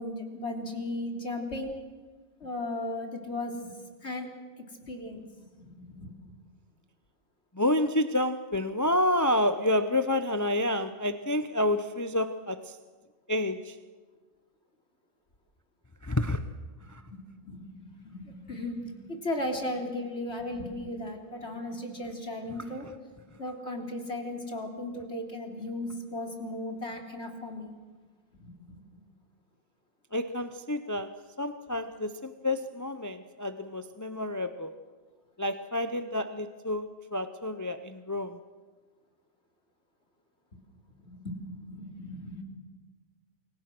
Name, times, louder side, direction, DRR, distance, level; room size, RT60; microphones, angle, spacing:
voice 1, 0.0-1.8 2.4-4.3 4.6-5.3 5.6-6.1 17.0-22.9 23.4-27.7 28.3-28.8 41.0-42.4, left 1 dB, 55° left, 2 dB, 3.8 m, -36 dB
voice 2, 7.6-12.6 13.3-13.7 16.0-16.4 30.1-31.1 31.4-34.7 35.4-38.4, left 1 dB, 15° left, 10 dB, 0.8 m, -29 dB
28.5 x 23.5 x 6.2 m, 1.4 s
omnidirectional pair, 1.4 m